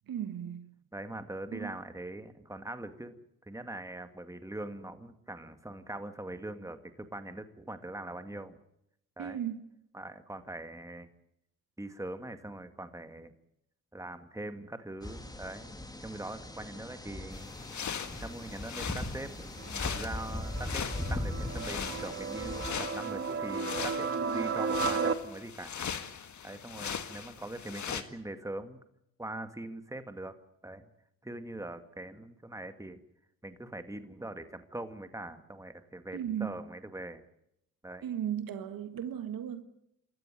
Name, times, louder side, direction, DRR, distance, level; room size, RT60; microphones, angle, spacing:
voice 1, 0.1-0.7 1.5-1.7 9.2-9.6 36.1-36.6 38.0-39.7, right 9 dB, 70° right, 1.7 m, -36 dB
voice 2, 0.9-3.2 3.5-8.6 9.2-9.4 9.9-11.1 11.8-13.3 13.9-15.7 16.0-17.5 18.2-25.8 26.4-28.8 29.2-30.3 30.6-30.8 31.2-33.0 33.4-37.2 37.8-38.0, right 1 dB, 10° right, 2.2 m, -42 dB
sound 1, 15.0-22.7, left 1 dB, 10° left, 2.6 m, -39 dB
sound 2, 17.3-28.0, left 7 dB, 55° left, 1.8 m, -40 dB
sound 3, 19.6-25.1, right 5 dB, 35° right, 1.8 m, -34 dB
27.5 x 13.5 x 9.2 m
cardioid pair, 65°, 35 cm